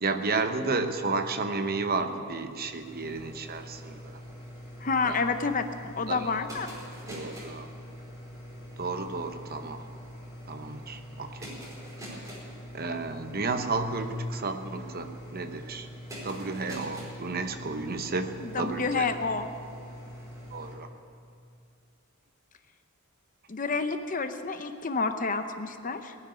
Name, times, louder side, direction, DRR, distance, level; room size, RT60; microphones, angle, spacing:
voice 1, 0.0-4.2 5.0-5.2 6.1-6.3 7.1-7.7 8.8-9.8 10.5-11.5 12.1-12.2 12.7-15.9 16.2-19.1 20.5-20.9, right 3 dB, 45° right, 7 dB, 0.9 m, -32 dB
sound 1, 2.2-20.7, equal, 15° right, 4.7 m, -44 dB
voice 2, 4.8-5.7 6.0-6.7 18.4-19.5 23.5-26.1, left 4 dB, 40° left, 8 dB, 0.8 m, -29 dB
19.5 x 6.6 x 10.0 m, 2.4 s
head